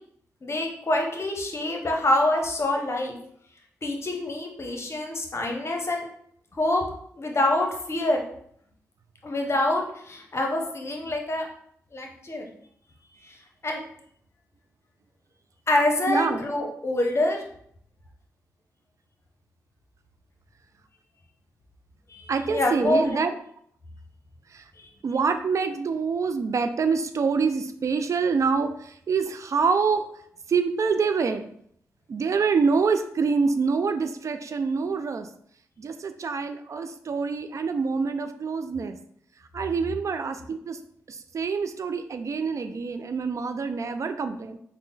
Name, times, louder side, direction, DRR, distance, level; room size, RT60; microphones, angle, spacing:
voice 1, 0.4-3.1 3.8-6.1 6.5-6.8 7.2-8.2 9.2-11.5 11.9-12.5 13.2-13.3 13.6-13.8 15.7-17.4 22.1-23.2 24.8-24.9, left 1 dB, 45° left, 2 dB, 0.8 m, -26 dB
voice 2, 16.1-16.4 22.3-23.3 24.5-24.6 25.0-30.1 30.5-31.5 32.1-35.3 35.8-39.0 39.5-40.8 41.1-44.6, right 5 dB, 55° right, 9 dB, 0.3 m, -26 dB
3.6 x 2.1 x 3.9 m, 0.67 s
supercardioid pair, 45°, 6 cm